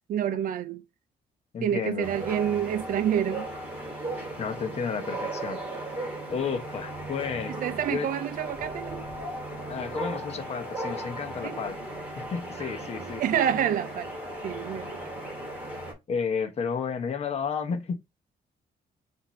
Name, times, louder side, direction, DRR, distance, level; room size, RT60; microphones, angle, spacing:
voice 1, 0.1-0.8 1.6-3.5 7.5-9.0 11.4-11.6 12.6-14.1 14.4-15.0, right 10 dB, 55° right, 0.5 m, -28 dB
voice 2, 1.5-2.1 4.4-5.6 6.3-7.6 7.9-8.1 9.5-11.9 12.2-13.4 14.7-14.9 16.1-18.0, left 6 dB, 40° left, 0.9 m, -32 dB
sound 1, 2.0-15.9, right 1 dB, 10° right, 2.3 m, -36 dB
5.8 x 2.7 x 3.1 m
cardioid pair, 145°, 17 cm